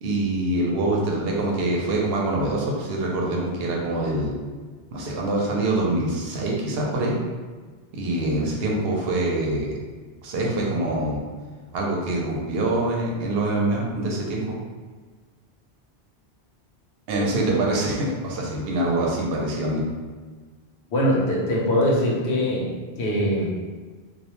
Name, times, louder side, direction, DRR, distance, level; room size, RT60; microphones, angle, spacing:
voice 1, 0.0-4.4 4.9-7.2 7.9-9.8 10.2-11.2 11.7-14.5 17.1-19.8, right 2 dB, 70° right, -2 dB, 0.8 m, -25 dB
voice 2, 17.1-17.5 20.9-22.7 23.0-23.5, equal, 80° left, -3 dB, 0.9 m, -23 dB
2.3 x 2.1 x 2.9 m, 1.5 s
omnidirectional pair, 1.1 m